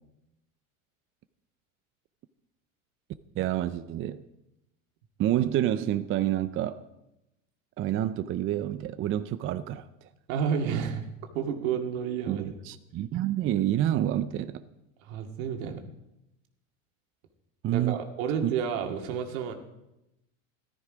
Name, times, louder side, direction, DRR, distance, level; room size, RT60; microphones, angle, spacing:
voice 1, 3.4-4.2 5.2-6.8 7.8-10.1 12.3-14.6 17.6-18.0 18.4-18.5, right 12 dB, 30° right, 12 dB, 0.5 m, -28 dB
voice 2, 10.3-11.1 11.3-12.5 15.0-15.8 17.7-19.5, right 7 dB, 75° right, 4 dB, 2.2 m, -30 dB
14.5 x 13.0 x 5.0 m, 0.90 s
supercardioid pair, 125°, 40 cm